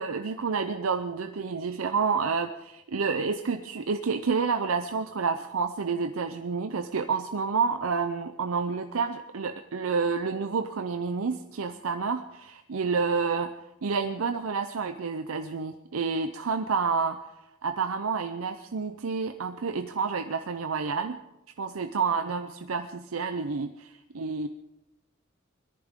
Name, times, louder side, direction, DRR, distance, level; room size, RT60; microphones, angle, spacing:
voice 1, 0.0-17.2 17.6-21.2 21.6-24.5, right 5 dB, 85° right, 8 dB, 0.6 m, -29 dB
21.5 x 14.0 x 3.7 m, 0.92 s
head